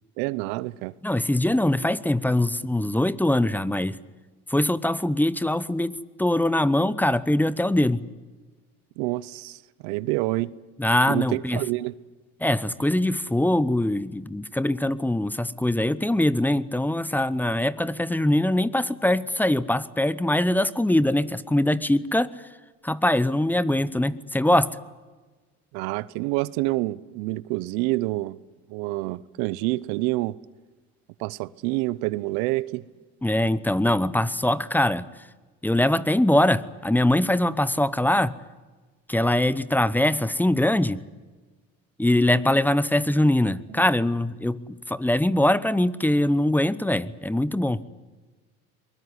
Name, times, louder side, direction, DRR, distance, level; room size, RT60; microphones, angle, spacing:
voice 1, 0.2-0.9 9.0-10.5 11.1-11.9 25.7-28.4 28.7-30.4 31.2-32.8 43.7-43.8, right 20 dB, 90° right, 0.8 m, -27 dB
voice 2, 1.0-4.0 4.5-8.0 10.8-11.6 12.4-22.3 22.8-24.7 33.2-35.1 35.6-38.3 39.1-41.0 42.0-47.8, left 1 dB, 5° left, 0.8 m, -22 dB
23.0 x 20.5 x 9.8 m
cardioid pair, 110°, 32 cm